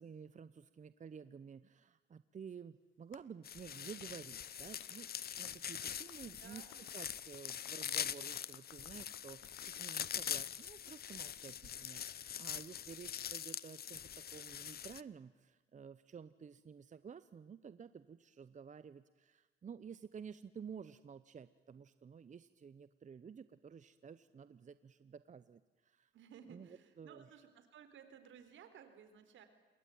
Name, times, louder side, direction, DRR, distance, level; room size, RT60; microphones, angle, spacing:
voice 1, 0.0-5.1 5.4-6.6 6.9-26.1 26.5-26.7 27.0-27.2, right 6 dB, 40° right, 14 dB, 0.9 m, -52 dB
Clapping, 3.1-3.2 4.0-4.1 4.8-4.9 5.4-5.6 6.1-6.2 6.7-10.5, left 12 dB, 80° left, 1.3 m, -60 dB
sound 1, 3.4-15.0, left 9 dB, 50° left, 0.8 m, -43 dB
voice 2, 6.1-6.9 26.1-29.5, right 8 dB, 75° right, 9 dB, 4.0 m, -58 dB
27.5 x 22.5 x 9.4 m, 1.2 s
cardioid pair, 90°, 20 cm